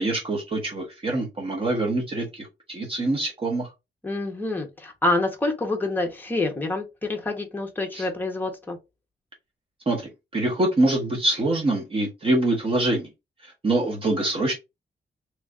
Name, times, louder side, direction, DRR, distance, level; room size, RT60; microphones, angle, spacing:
voice 1, 0.0-3.7 7.9-8.1 9.9-10.0 10.3-13.1 13.6-14.5, right 2 dB, 30° right, 0.9 m, -24 dB
voice 2, 4.0-8.8, left 2 dB, 10° left, 0.7 m, -27 dB
3.2 x 2.4 x 3.5 m
wide cardioid pair, 165°, 18 cm